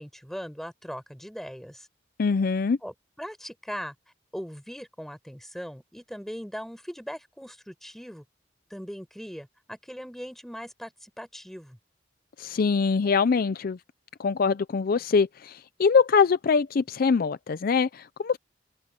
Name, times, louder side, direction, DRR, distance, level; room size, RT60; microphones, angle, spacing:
voice 1, 0.0-1.9 2.8-3.9 4.3-8.2 8.7-11.8, equal, ahead, 5.7 m, -39 dB
voice 2, 2.2-2.8 12.4-13.8 14.2-18.4, left 5 dB, 50° left, 0.4 m, -23 dB
head